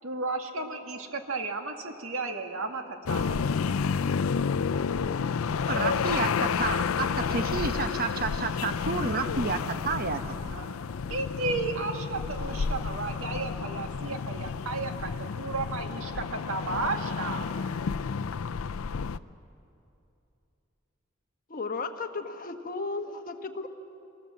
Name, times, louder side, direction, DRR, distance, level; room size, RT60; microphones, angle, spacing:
voice 1, 0.0-3.4 10.5-10.7 11.1-17.5, right 3 dB, 75° right, 5 dB, 1.9 m, -33 dB
sound 1, 3.0-19.2, left 5 dB, 85° left, 0.5 m, -30 dB
voice 2, 5.6-10.6, right 4 dB, 45° right, 9 dB, 1.0 m, -31 dB
voice 3, 21.5-23.7, left 3 dB, 45° left, 6 dB, 1.2 m, -34 dB
24.5 x 19.0 x 7.4 m, 2.7 s
head